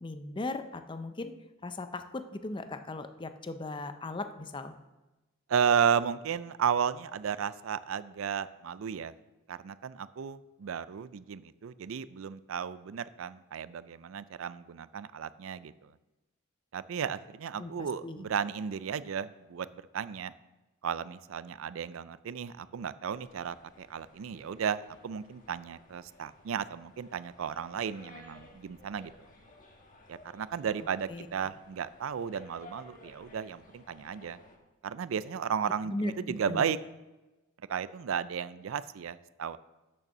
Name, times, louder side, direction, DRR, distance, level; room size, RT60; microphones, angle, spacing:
voice 1, 0.0-1.3 1.6-4.8 17.6-18.3 31.1-31.3 35.9-36.7, left 2 dB, 25° left, 9 dB, 0.5 m, -38 dB
voice 2, 5.5-9.1 9.5-15.7 16.7-19.7 19.9-20.3 20.8-29.1 30.1-34.4 34.8-36.8 37.7-39.6, right 7 dB, 70° right, 15 dB, 0.4 m, -34 dB
sound 1, 23.1-34.6, left 1 dB, 40° left, 1.4 m, -56 dB
8.8 x 6.7 x 6.6 m, 1.1 s
head